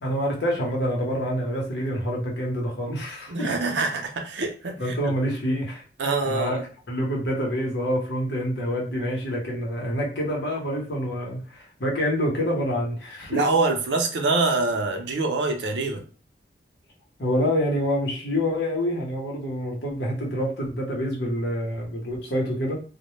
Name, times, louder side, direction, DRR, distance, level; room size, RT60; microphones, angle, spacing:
voice 1, 0.0-3.5 4.8-5.8 6.2-6.6 6.9-13.4 17.2-22.8, equal, 70° left, 0.9 m, -27 dB
voice 2, 3.3-5.1 6.0-6.6 13.3-16.0, right 3 dB, 80° right, 0.5 m, -25 dB
2.1 x 2.1 x 3.0 m
head